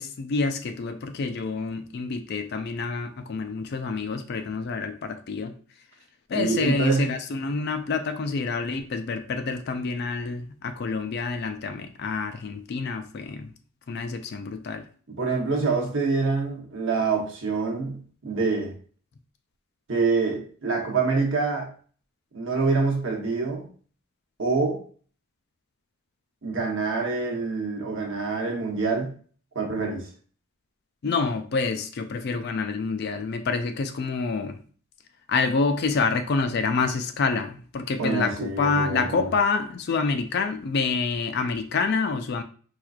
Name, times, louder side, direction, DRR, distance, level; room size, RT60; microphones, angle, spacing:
voice 1, 0.0-5.5 6.3-13.5 13.9-14.9 31.0-34.6 35.3-42.4, left 4 dB, 45° left, 0.3 m, -27 dB
voice 2, 6.3-7.1 15.1-18.7 19.9-21.7 22.3-23.7 24.4-24.8 26.4-29.1 29.5-30.1 38.0-39.2, right 4 dB, 60° right, 0.9 m, -26 dB
4.4 x 2.4 x 2.4 m
head